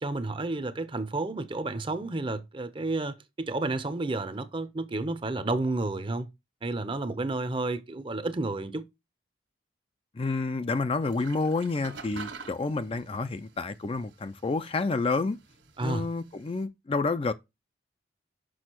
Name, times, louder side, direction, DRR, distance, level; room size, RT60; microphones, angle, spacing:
voice 1, 0.0-6.3 6.6-8.8 15.8-16.1, right 2 dB, 25° right, 0.6 m, -31 dB
voice 2, 10.1-15.4 15.8-17.3, left 3 dB, 30° left, 0.4 m, -29 dB
sound 1, 11.0-16.6, right 4 dB, 70° right, 1.7 m, -48 dB
6.3 x 5.7 x 4.5 m
head